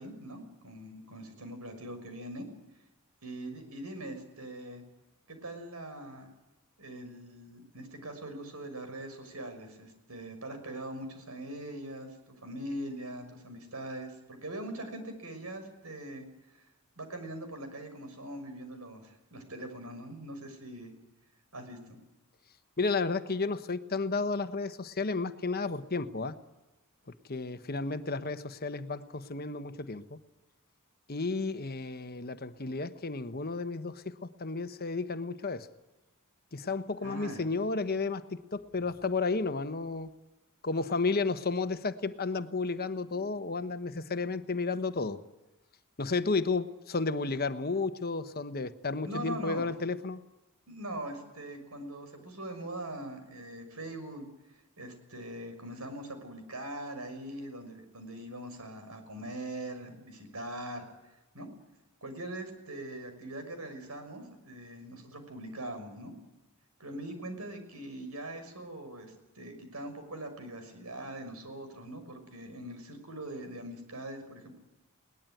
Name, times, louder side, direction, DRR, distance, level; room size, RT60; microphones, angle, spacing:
voice 1, 0.0-2.5 3.2-4.8 5.3-6.3 6.8-16.2 17.0-20.9 21.5-22.0 37.0-37.4 49.0-49.6 50.7-54.3 54.8-60.9 61.3-61.5 62.0-66.1 66.8-74.5, right 1 dB, 80° right, 7 dB, 6.1 m, -42 dB
voice 2, 22.8-26.4 27.3-30.2 31.1-35.7 36.5-40.1 40.6-45.2 46.0-50.2, left 3 dB, 45° left, 10 dB, 1.1 m, -32 dB
21.5 x 19.5 x 9.2 m, 1.0 s
head